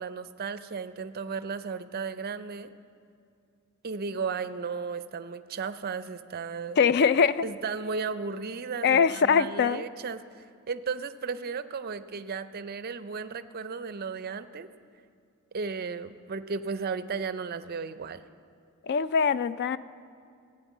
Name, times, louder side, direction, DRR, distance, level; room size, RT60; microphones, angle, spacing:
voice 1, 0.0-2.7 3.8-6.8 7.4-14.7 15.5-18.2, right 5 dB, 45° right, 13 dB, 0.5 m, -35 dB
voice 2, 6.8-7.4 8.8-9.8 18.8-19.8, left 6 dB, 50° left, 16 dB, 0.3 m, -22 dB
14.5 x 8.9 x 7.2 m, 2.4 s
head